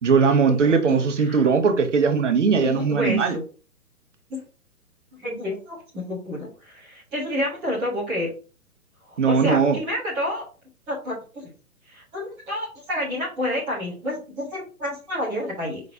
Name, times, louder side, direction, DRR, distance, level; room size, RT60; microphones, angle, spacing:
voice 1, 0.0-3.4 9.2-9.8, right 5 dB, 50° right, 1.0 m, -19 dB
voice 2, 0.6-1.0 1.3-1.4 2.6-3.4 4.3-4.4 5.2-8.3 9.1-10.4 10.9-11.5 11.9-15.8, left 1 dB, 5° right, 0.6 m, -29 dB
5.1 x 3.8 x 2.6 m
figure-of-eight pair, 125°, 46 cm